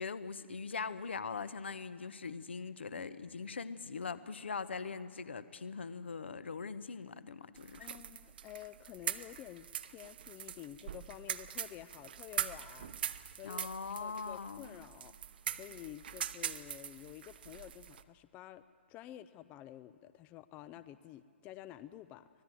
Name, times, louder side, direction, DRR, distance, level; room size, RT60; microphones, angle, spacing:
voice 1, 0.0-7.9 13.4-14.8, left 5 dB, 65° left, 14 dB, 1.1 m, -41 dB
sound 1, 7.6-18.0, right 9 dB, 50° right, 1.0 m, -42 dB
voice 2, 7.8-13.7 14.0-15.1 15.5-18.6 18.9-22.4, left 13 dB, 20° left, 14 dB, 0.5 m, -50 dB
24.5 x 18.5 x 7.7 m, 2.2 s
figure-of-eight pair, 125°, 7 cm